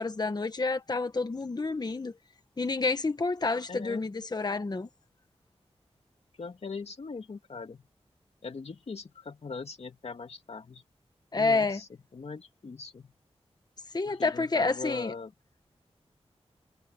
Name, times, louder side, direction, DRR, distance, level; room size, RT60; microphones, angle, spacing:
voice 1, 0.0-2.1 2.6-4.9 11.3-11.8 13.9-15.1, left 3 dB, 40° left, 1.3 m, -29 dB
voice 2, 3.7-4.1 6.4-7.9 8.4-10.8 11.3-13.1 14.0-15.3, left 4 dB, 70° left, 2.6 m, -41 dB
wide cardioid pair, 85°, 11 cm